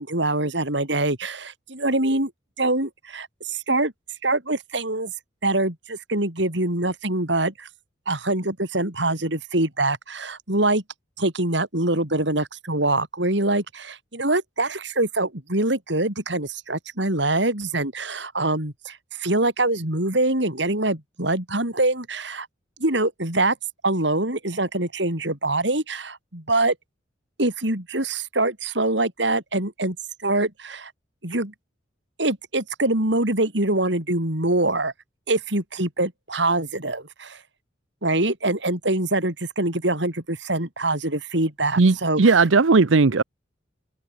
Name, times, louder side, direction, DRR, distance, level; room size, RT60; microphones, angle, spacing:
voice 1, 0.0-2.3 2.6-3.9 4.2-5.1 5.4-7.7 8.1-10.8 11.2-22.5 22.8-23.5 23.8-26.7 27.4-30.0 30.2-30.9 31.2-31.5 32.2-34.9 35.3-37.4 38.0-42.4, right 2 dB, 65° right, 4.9 m, -24 dB
voice 2, 41.8-43.2, right 4 dB, 90° right, 0.8 m, -17 dB
head